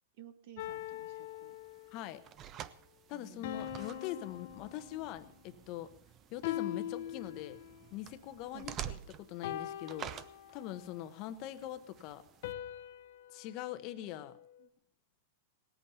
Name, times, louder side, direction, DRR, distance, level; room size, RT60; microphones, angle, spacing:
voice 1, 0.2-1.6 3.1-3.7 8.5-8.7 14.6-14.7, right 11 dB, 55° right, 11 dB, 1.5 m, -55 dB
sound 1, 0.6-2.1 3.4-5.3 6.4-7.9 9.4-10.9 12.4-14.7, left 12 dB, 60° left, 0.9 m, -43 dB
sound 2, 0.6-12.5, right 10 dB, 30° right, 0.7 m, -50 dB
voice 2, 1.9-2.2 3.1-5.9 6.3-7.6 7.9-10.1 10.5-12.2 13.3-14.3, left 13 dB, 40° left, 11 dB, 1.0 m, -42 dB
18.5 x 8.6 x 7.0 m, 0.62 s
supercardioid pair, 145°, 0 cm